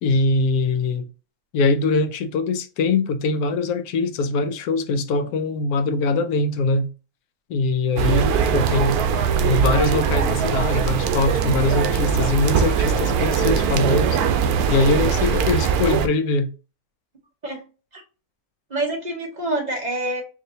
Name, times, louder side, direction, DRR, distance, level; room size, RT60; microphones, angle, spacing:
voice 1, 0.0-1.0 1.5-6.9 7.5-9.0 9.4-14.2 14.7-16.5, left 3 dB, 80° left, 1.1 m, -22 dB
sound 1, 8.0-16.1, right 7 dB, 80° right, 1.1 m, -21 dB
voice 2, 8.2-8.9 17.4-17.6 17.9-18.0 18.7-20.2, right 2 dB, 35° right, 1.0 m, -27 dB
4.7 x 2.6 x 2.7 m
omnidirectional pair, 1.6 m